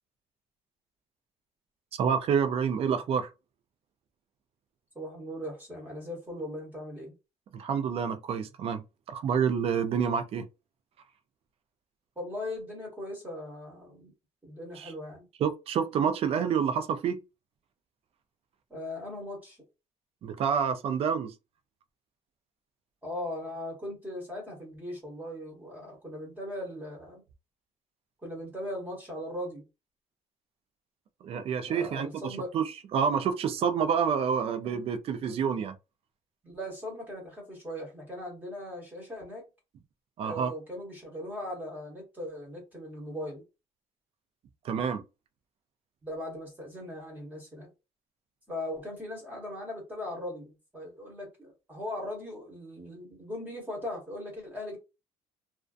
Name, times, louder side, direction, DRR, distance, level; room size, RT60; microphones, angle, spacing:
voice 1, 1.9-3.3 7.5-10.5 14.8-14.9 15.4-17.2 20.2-21.3 31.2-35.7 40.2-40.5 44.6-45.0, right 7 dB, 45° right, 0.4 m, -28 dB
voice 2, 4.9-7.1 12.2-14.1 14.4-15.2 18.7-19.6 23.0-27.2 28.2-29.6 31.7-32.5 35.2-35.4 36.4-39.4 40.2-43.4 46.0-47.7 48.5-54.8, left 1 dB, 15° right, 1.1 m, -39 dB
2.5 x 2.2 x 2.4 m
cardioid pair, 140°, 14 cm